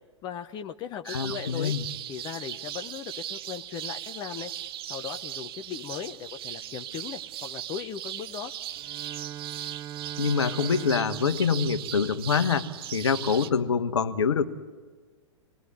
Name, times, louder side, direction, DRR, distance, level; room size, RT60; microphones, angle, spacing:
voice 1, 0.2-1.7 2.1-4.5 4.9-8.5, left 9 dB, 25° left, 7 dB, 1.0 m, -38 dB
sound 1, 1.0-13.5, right 12 dB, 50° right, 0.9 m, -38 dB
voice 2, 1.1-1.8 10.2-14.5, left 6 dB, 65° left, 9 dB, 1.4 m, -25 dB
Bowed string instrument, 8.7-12.9, right 11 dB, 25° right, 0.6 m, -41 dB
26.5 x 20.0 x 8.2 m, 1.4 s
figure-of-eight pair, 100°, 16 cm